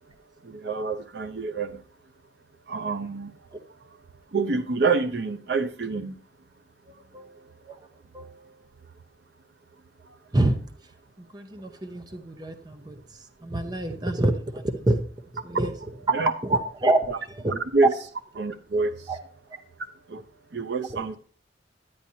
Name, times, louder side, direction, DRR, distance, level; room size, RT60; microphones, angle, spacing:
voice 1, 0.5-1.7 2.7-3.3 4.3-6.1 16.1-16.3 17.1-17.2 17.5-17.9 18.4-18.9 20.1-20.2 20.5-21.2, right 4 dB, 60° right, 9 dB, 0.6 m, -26 dB
voice 2, 7.1-7.8 8.1-8.6 10.3-10.6 11.2-13.0 13.4-15.0 15.3-15.8 16.1-17.5 17.8-17.9 19.1-19.2, right 2 dB, 20° right, 7 dB, 0.6 m, -26 dB
10.5 x 9.5 x 2.7 m, 0.43 s
head